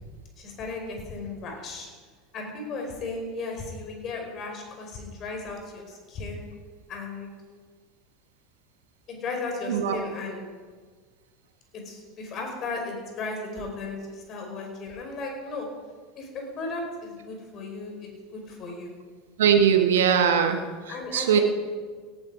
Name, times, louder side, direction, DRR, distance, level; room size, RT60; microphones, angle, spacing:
voice 1, 0.4-1.9 2.3-6.5 6.9-7.3 9.1-10.4 11.7-15.7 16.2-18.9 20.9-21.4, left 3 dB, 40° left, 2 dB, 4.9 m, -35 dB
voice 2, 19.4-20.6 21.1-21.4, right 8 dB, 70° right, 6 dB, 1.2 m, -20 dB
18.0 x 11.5 x 4.9 m, 1.5 s
figure-of-eight pair, 80°, 0 cm